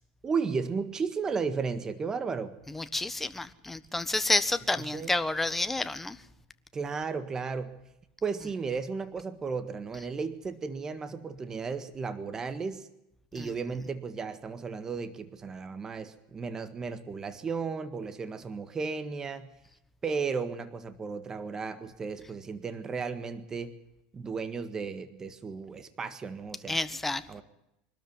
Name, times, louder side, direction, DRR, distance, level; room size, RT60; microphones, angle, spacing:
voice 1, 0.2-2.6 4.8-5.1 6.7-7.8 8.2-12.9 13.3-19.5 20.0-23.7 24.1-26.8 27.3-27.4, right 5 dB, 25° right, 11 dB, 1.6 m, -34 dB
voice 2, 2.7-6.2 13.4-13.5 26.7-27.4, left 2 dB, 10° left, 12 dB, 1.3 m, -30 dB
24.5 x 13.0 x 9.5 m, 0.86 s
supercardioid pair, 120°, 2 cm